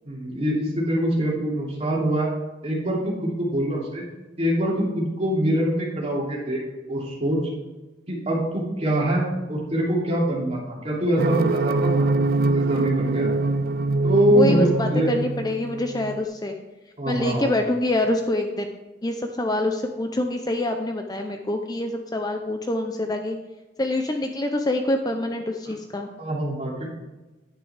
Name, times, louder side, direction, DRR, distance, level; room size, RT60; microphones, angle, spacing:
voice 1, 0.0-2.3 2.6-4.0 4.4-6.6 6.9-7.4 8.1-12.1 12.5-13.4 14.0-15.1 17.0-17.5 26.2-26.9, right 1 dB, 35° right, -4 dB, 3.0 m, -24 dB
sound 1, 11.2-16.2, right 2 dB, 55° right, 0.5 m, -24 dB
voice 2, 14.3-16.6 17.1-18.7 19.0-23.4 23.8-26.1, left 1 dB, 20° left, 4 dB, 0.6 m, -26 dB
10.5 x 9.0 x 3.4 m, 1.1 s
head